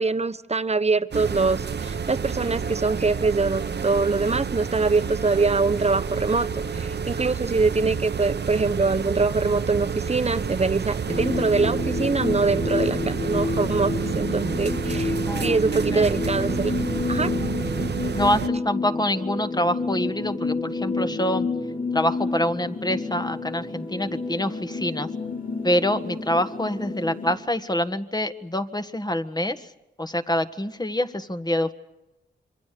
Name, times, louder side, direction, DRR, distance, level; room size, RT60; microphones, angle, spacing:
voice 1, 0.0-15.1 15.4-16.7 17.1-17.3, right 4 dB, 35° right, 11 dB, 1.1 m, -24 dB
sound 1, 1.1-18.5, right 6 dB, 65° right, 1.1 m, -29 dB
sound 2, 11.1-27.4, left 3 dB, 45° left, 3.5 m, -29 dB
voice 2, 15.2-15.6 15.9-16.1 18.1-21.5 21.9-25.1 25.6-29.7 30.0-31.7, left 1 dB, 20° left, 9 dB, 1.6 m, -26 dB
27.0 x 24.5 x 6.9 m, 0.99 s
cardioid pair, 60°, 19 cm